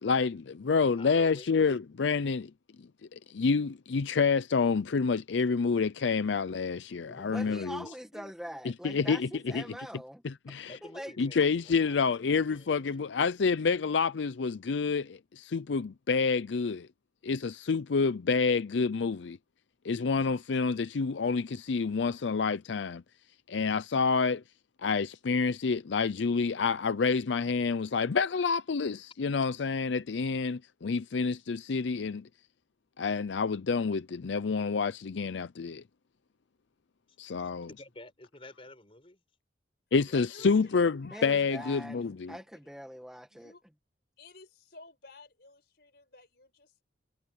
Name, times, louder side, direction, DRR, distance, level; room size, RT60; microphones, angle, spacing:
voice 1, 0.0-2.5 2.8-7.8 8.6-9.6 10.2-10.7 11.2-16.9 17.2-19.4 19.8-23.0 23.5-24.4 24.8-32.3 33.0-35.8 37.2-37.7 39.9-42.4, left 5 dB, 80° left, 0.5 m, -28 dB
voice 2, 1.0-1.5 7.1-7.3 7.8-8.9 10.7-13.3 37.7-39.2 40.1-40.6, left 1 dB, 30° left, 4.8 m, -51 dB
voice 3, 7.2-11.1 41.1-43.5, equal, 5° right, 1.9 m, -44 dB
voice 4, 40.1-41.2 41.5-42.4 43.3-43.6 44.2-46.8, left 3 dB, 60° left, 5.4 m, -53 dB
head